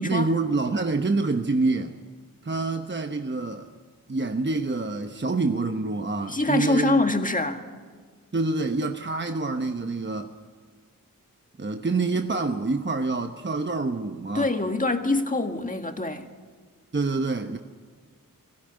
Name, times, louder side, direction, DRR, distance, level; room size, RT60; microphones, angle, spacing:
voice 1, 0.0-2.0 2.4-3.7 4.1-7.1 8.3-10.3 11.6-14.5 16.9-17.6, right 3 dB, 30° right, 1.0 m, -26 dB
voice 2, 6.3-7.6 14.4-16.3, left 2 dB, 25° left, 1.9 m, -24 dB
20.0 x 16.0 x 9.7 m
wide cardioid pair, 60°, 34 cm